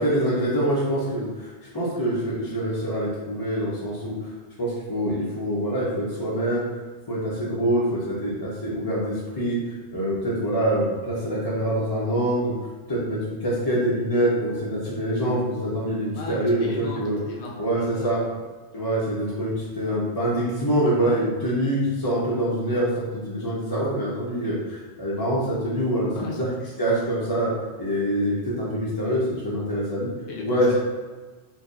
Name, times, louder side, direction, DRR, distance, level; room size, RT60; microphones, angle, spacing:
voice 1, 0.0-4.2 4.6-6.7 7.1-9.6 9.9-12.5 12.9-17.2 17.6-18.2 18.7-26.5 26.8-27.5 27.8-30.1 30.4-30.8, right 1 dB, 25° left, -8 dB, 0.6 m, -25 dB
voice 2, 16.1-18.3 26.1-26.4 30.3-30.8, left 3 dB, 75° left, -2 dB, 1.0 m, -37 dB
4.3 x 2.7 x 2.5 m, 1.3 s
omnidirectional pair, 1.1 m